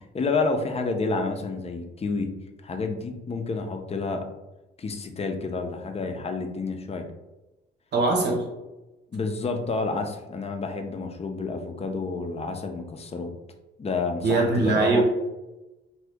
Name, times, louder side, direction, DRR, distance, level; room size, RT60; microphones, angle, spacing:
voice 1, 0.1-2.3 2.6-4.2 4.8-7.1 9.1-13.3 13.8-15.0, left 3 dB, 30° left, 4 dB, 0.5 m, -29 dB
voice 2, 7.9-8.4 14.2-15.0, right 3 dB, 60° right, 0 dB, 1.0 m, -21 dB
2.7 x 2.7 x 3.4 m, 1.0 s
cardioid pair, 90°, 20 cm